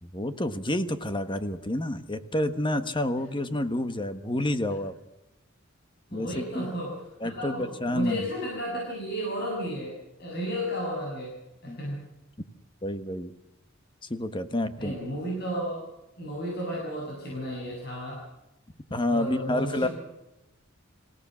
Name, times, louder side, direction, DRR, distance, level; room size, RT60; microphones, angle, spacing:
voice 1, 0.0-4.9 6.1-6.7 7.2-8.3 11.7-11.8 12.8-13.3 14.1-15.0 18.9-19.9, left 1 dB, 25° left, 10 dB, 1.4 m, -29 dB
voice 2, 6.1-11.3 11.6-12.1 14.8-15.8 16.2-18.2 19.1-19.9, equal, 55° left, -3 dB, 7.4 m, -33 dB
26.5 x 17.0 x 6.4 m, 0.95 s
head